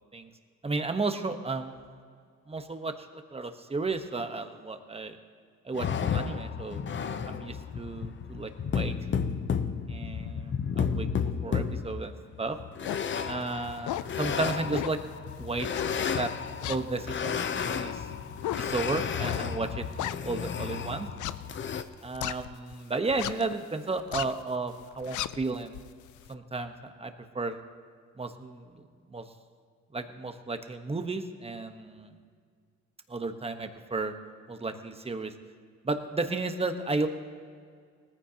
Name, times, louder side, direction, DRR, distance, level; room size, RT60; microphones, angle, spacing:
voice 1, 0.6-1.8 2.5-5.2 5.6-6.8 7.3-8.9 9.9-11.1 11.4-12.1 12.4-12.6 13.3-15.0 15.4-15.7 16.1-16.3 16.7-18.0 18.6-21.1 22.0-25.8 26.3-27.6 28.2-28.8 29.1-29.3 29.9-32.2 33.1-34.1 34.5-35.3 35.8-37.1, right 3 dB, 20° right, 7 dB, 1.1 m, -33 dB
sound 1, 5.7-21.8, left 6 dB, 40° left, 0.7 m, -32 dB
sound 2, 12.8-13.1 13.6-14.2 14.7-15.1 15.7-16.2 16.6-20.6 21.1-22.7 23.1-23.5 23.9-24.4 24.8-26.3, left 14 dB, 75° left, 0.5 m, -36 dB
19.0 x 14.5 x 2.9 m, 2.1 s
cardioid pair, 90°, 30 cm